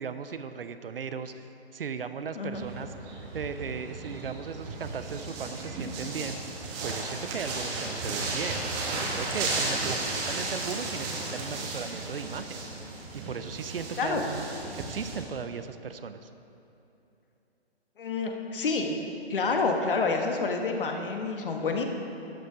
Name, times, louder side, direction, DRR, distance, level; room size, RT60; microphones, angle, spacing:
voice 1, 0.0-2.9 3.3-6.5 6.8-8.6 9.0-12.6 13.1-14.5 14.7-16.3, right 6 dB, 60° right, 10 dB, 0.6 m, -37 dB
sound 1, 2.5-15.2, right 2 dB, 20° right, 1.3 m, -34 dB
voice 2, 18.0-18.9 19.3-21.8, left 4 dB, 55° left, 3 dB, 1.4 m, -28 dB
12.5 x 9.1 x 4.8 m, 2.9 s
figure-of-eight pair, 145°, 33 cm